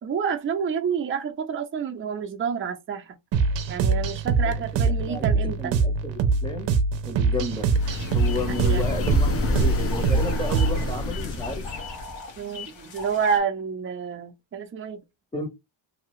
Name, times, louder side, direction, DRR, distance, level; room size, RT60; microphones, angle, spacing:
voice 1, 0.0-3.2 3.7-5.8 8.6-8.9 12.4-15.0, right 6 dB, 25° right, 0.6 m, -29 dB
sound 1, 3.3-11.0, right 4 dB, 65° right, 0.7 m, -24 dB
voice 2, 4.4-5.3 5.6-6.7 7.0-7.7 8.1-11.7 15.3-15.5, left 1 dB, 10° left, 0.8 m, -32 dB
sound 2, 7.5-12.2, left 2 dB, 30° left, 0.5 m, -29 dB
sound 3, 7.8-13.4, left 4 dB, 70° left, 1.1 m, -40 dB
2.8 x 2.3 x 3.1 m
cardioid pair, 120°, 46 cm